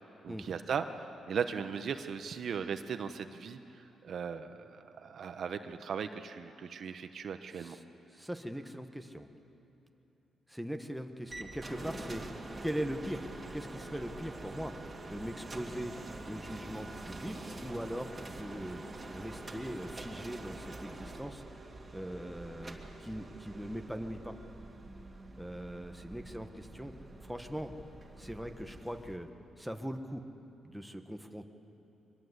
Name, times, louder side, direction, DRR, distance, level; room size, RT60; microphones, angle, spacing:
voice 1, 0.2-7.8, right 6 dB, 60° right, 8 dB, 1.0 m, -38 dB
voice 2, 8.1-9.3 10.5-12.2 12.6-14.7 15.1-15.9 16.2-17.4 17.6-18.8 19.1-21.4 21.9-24.3 25.4-26.9 27.2-27.7 28.2-29.3 29.6-30.2 30.6-31.5, equal, ahead, 5 dB, 1.3 m, -40 dB
sound 1, 11.3-29.2, right 2 dB, 25° right, 2.3 m, -46 dB
23.5 x 20.5 x 8.1 m, 2.9 s
cardioid pair, 105°, 0 cm